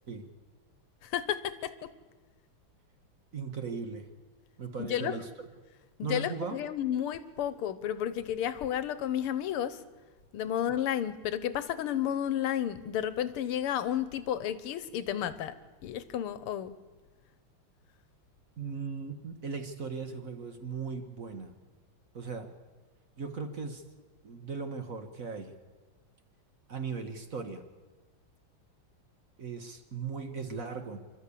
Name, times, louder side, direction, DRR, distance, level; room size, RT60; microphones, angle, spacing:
voice 1, 1.0-1.9 4.8-5.1 6.0-9.8 10.3-15.5 15.8-16.8, left 10 dB, 85° left, 14 dB, 1.8 m, -32 dB
voice 2, 3.3-4.1 4.6-5.3 6.0-6.6 18.6-21.5 22.1-22.5 23.2-23.8 24.2-25.6 26.7-27.6 29.4-31.0, right 5 dB, 45° right, 7 dB, 1.4 m, -38 dB
26.5 x 12.5 x 8.4 m, 1.3 s
omnidirectional pair, 2.4 m